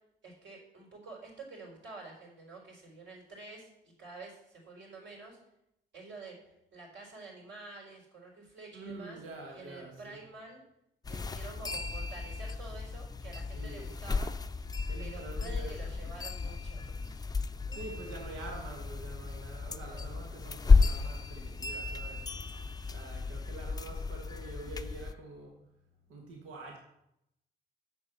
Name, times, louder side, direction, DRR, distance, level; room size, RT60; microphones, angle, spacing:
voice 1, 0.2-5.4 5.9-6.4 6.7-9.2 9.5-10.6 11.0-14.3 15.0-17.2 19.9-20.1, right 3 dB, 65° right, -1 dB, 4.3 m, -49 dB
voice 2, 8.7-10.2 13.5-13.9 14.9-15.7 17.7-22.3 22.9-25.6 26.1-26.8, right 2 dB, 90° right, 0 dB, 1.7 m, -46 dB
sound 1, 11.0-25.1, left 4 dB, 20° left, 0.5 m, -32 dB
8.1 x 6.9 x 6.7 m, 0.82 s
cardioid pair, 90°, 20 cm